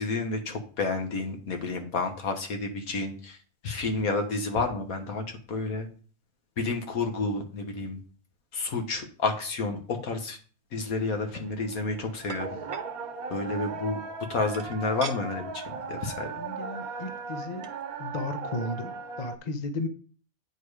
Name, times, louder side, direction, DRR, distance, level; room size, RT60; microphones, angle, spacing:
voice 1, 0.0-3.4 3.6-5.2 5.5-5.9 6.6-8.0 8.5-10.4 10.7-12.5 13.3-14.0 14.3-15.6 15.9-16.3, left 3 dB, 70° left, 5 dB, 1.8 m, -30 dB
sound 1, 10.8-19.4, right 4 dB, 75° right, 1.4 m, -38 dB
sound 2, 11.2-11.5 12.3-12.9 14.5-15.2 15.7-15.8 16.2-16.4 17.3-17.4 17.6-17.8, right 4 dB, 55° right, 0.3 m, -40 dB
voice 2, 16.4-17.7 18.0-19.9, left 2 dB, 35° left, 7 dB, 0.8 m, -34 dB
9.0 x 4.6 x 4.9 m, 0.41 s
omnidirectional pair, 1.6 m